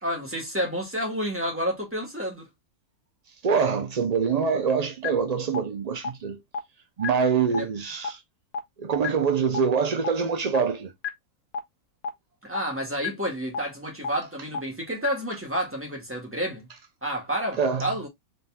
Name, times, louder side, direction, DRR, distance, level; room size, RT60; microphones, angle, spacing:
voice 1, 0.0-2.5 7.5-7.7 12.4-16.7 17.0-18.1, equal, 10° right, 1.6 m, -30 dB
voice 2, 3.4-6.4 7.0-8.2 8.8-10.9 17.6-17.9, right 6 dB, 85° right, 0.3 m, -25 dB
sound 1, 5.0-5.1 5.5-5.6 6.0-6.1 6.5-6.6 7.0-7.1 7.5-7.6 8.0-8.1 8.5-8.6 9.0-9.1 9.5-9.6 10.0-10.1 10.5-10.6 11.0-11.1 11.5-11.6 12.0-12.1 12.5-12.6 13.0-13.1 13.5-13.6 14.0-14.1 14.5-14.6 15.0-15.1 15.5-15.6, left 6 dB, 80° left, 1.2 m, -28 dB
4.0 x 3.9 x 2.2 m
omnidirectional pair, 1.5 m